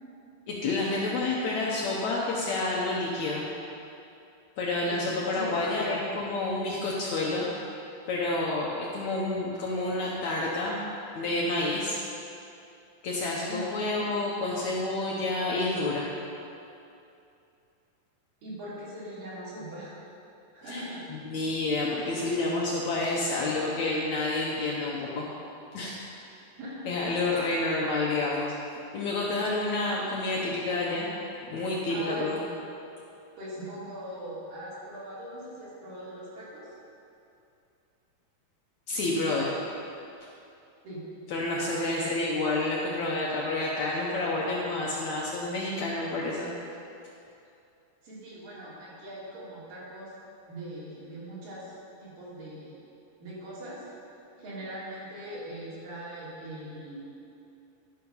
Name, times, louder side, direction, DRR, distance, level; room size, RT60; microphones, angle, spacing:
voice 1, 0.5-3.5 4.6-7.5 8.1-10.8 11.2-12.0 13.0-16.1 20.7-20.8 21.1-25.3 25.7-26.0 26.9-28.5 28.9-31.1 31.5-32.4 38.9-39.5 40.2-40.3 41.3-46.5, left 2 dB, 70° left, -4 dB, 1.9 m, -29 dB
voice 2, 5.3-5.9 13.5-13.6 18.4-19.9 20.5-21.0 26.6-27.0 27.6-27.7 31.9-32.4 33.4-36.7 40.8-41.0 41.6-42.1 48.0-50.1 50.5-51.7 52.0-52.8 53.2-53.8 54.3-57.0, right 1 dB, 70° right, -9 dB, 4.5 m, -40 dB
12.0 x 6.3 x 5.4 m, 2.6 s
omnidirectional pair, 4.1 m